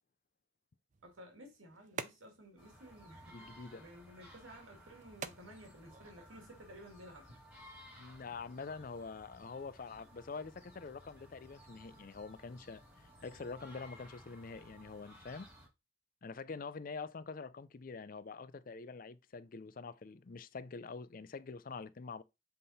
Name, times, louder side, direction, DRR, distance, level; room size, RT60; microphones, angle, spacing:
sound 1, 0.9-7.0, right 5 dB, 40° right, 0.5 m, -51 dB
voice 1, 1.0-7.4, equal, 85° right, 2.0 m, -55 dB
sound 2, 2.6-15.7, equal, 10° right, 2.5 m, -58 dB
voice 2, 3.3-3.8 8.0-15.5 16.2-22.2, left 4 dB, 45° left, 0.4 m, -46 dB
7.7 x 3.7 x 4.1 m
head